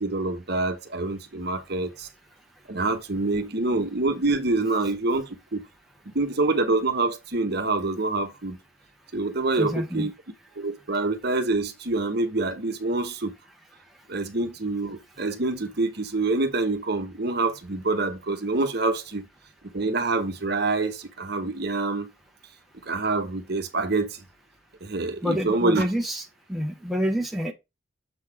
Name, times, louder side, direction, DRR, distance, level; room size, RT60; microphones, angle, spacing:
voice 1, 0.0-2.1 2.7-5.6 6.1-8.6 9.1-10.1 10.6-13.3 14.1-19.3 19.7-22.1 22.9-24.2 24.8-25.9, right 3 dB, 50° right, 1.0 m, -26 dB
voice 2, 9.6-10.1 25.2-27.5, equal, ahead, 0.9 m, -28 dB
6.9 x 4.0 x 4.7 m
head